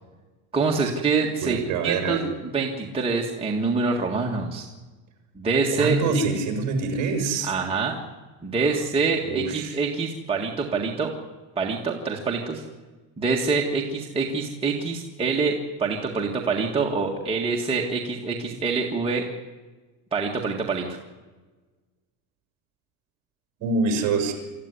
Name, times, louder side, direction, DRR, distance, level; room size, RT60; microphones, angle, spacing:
voice 1, 0.5-4.7 5.4-6.2 7.4-8.0 8.4-11.1 11.6-12.6 13.2-19.3 20.1-21.0, right 4 dB, 10° right, -1 dB, 1.8 m, -25 dB
voice 2, 1.4-2.2 5.7-7.5 9.3-9.8 23.6-24.3, right 4 dB, 40° right, 5 dB, 5.8 m, -25 dB
25.5 x 14.0 x 9.9 m, 1.3 s
cardioid pair, 160°, 44 cm